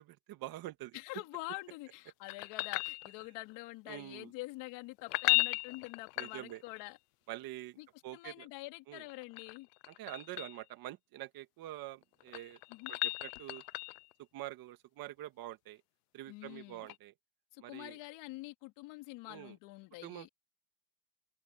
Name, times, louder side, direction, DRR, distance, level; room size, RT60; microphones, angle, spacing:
voice 1, 0.0-1.0 3.9-4.3 6.2-6.6 7.3-8.5 8.9-9.0 9.9-12.6 12.9-13.6 14.2-15.8 16.1-17.1 17.6-18.0 19.3-19.6 20.0-20.3, right 15 dB, 50° right, 1.9 m, -46 dB
voice 2, 0.9-7.0 7.8-9.7 12.7-12.9 16.3-16.9 17.5-20.3, left 21 dB, 65° left, 3.4 m, -46 dB
sound 1, 2.3-3.5 5.0-6.8 9.0-10.6 12.0-14.1 16.9-17.0, left 24 dB, 85° left, 0.7 m, -35 dB
cardioid pair, 140°, 46 cm